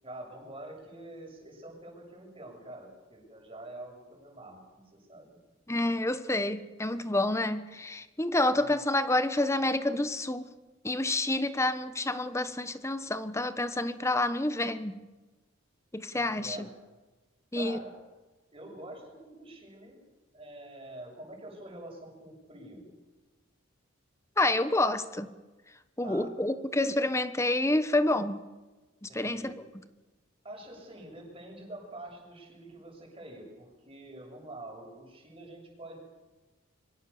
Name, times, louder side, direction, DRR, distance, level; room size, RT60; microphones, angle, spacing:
voice 1, 0.0-5.4 8.5-8.7 16.1-16.7 17.5-18.0 18.5-20.0 20.3-22.9 26.0-26.3 29.1-29.6 30.4-36.0, right 1 dB, 25° right, 7.4 m, -46 dB
voice 2, 5.7-10.5 10.8-15.0 15.9-16.6 17.5-17.8 24.4-25.3 26.0-28.4 29.0-29.5, left 2 dB, 15° left, 1.2 m, -28 dB
25.0 x 23.5 x 7.1 m
head